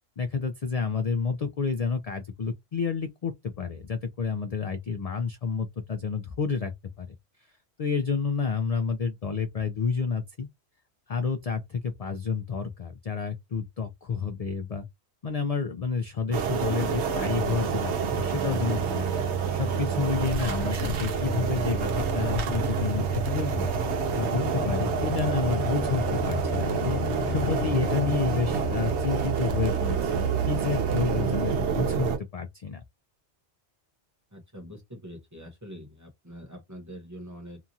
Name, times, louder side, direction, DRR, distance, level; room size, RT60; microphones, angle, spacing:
voice 1, 0.2-6.7 7.0-7.1 7.8-10.5 11.1-14.9 15.2-23.7 24.1-32.8, left 5 dB, 55° left, 0.4 m, -30 dB
sound 1, 16.3-32.2, right 6 dB, 75° right, 1.0 m, -28 dB
sound 2, 17.4-30.5 30.8-30.9, left 6 dB, 85° left, 1.0 m, -37 dB
voice 2, 34.3-37.6, equal, 15° right, 0.9 m, -44 dB
2.9 x 2.4 x 2.6 m
omnidirectional pair, 1.1 m